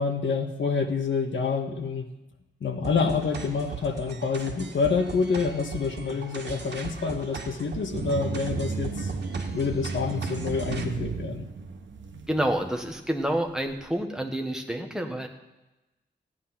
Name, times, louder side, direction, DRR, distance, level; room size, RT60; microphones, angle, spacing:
voice 1, 0.0-2.1 2.6-9.1 9.5-11.4, left 5 dB, 85° left, 4 dB, 1.5 m, -27 dB
sound 1, 2.8-10.8, right 4 dB, 65° right, 1.9 m, -39 dB
sound 2, 7.9-12.5, right 4 dB, 80° right, 1.3 m, -33 dB
voice 2, 12.3-15.3, right 1 dB, 5° right, 3 dB, 1.4 m, -28 dB
15.5 x 9.8 x 5.7 m, 1.0 s
wide cardioid pair, 155°, 19 cm